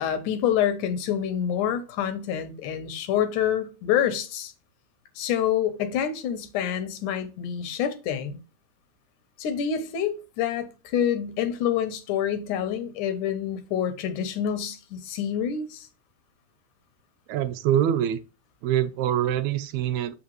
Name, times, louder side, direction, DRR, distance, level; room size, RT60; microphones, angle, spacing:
voice 1, 0.0-4.5 5.2-8.4 9.4-15.9, left 9 dB, 80° left, 2.4 m, -27 dB
voice 2, 17.3-18.2 18.6-20.1, right 11 dB, 80° right, 1.8 m, -24 dB
6.9 x 5.0 x 3.0 m
omnidirectional pair, 3.5 m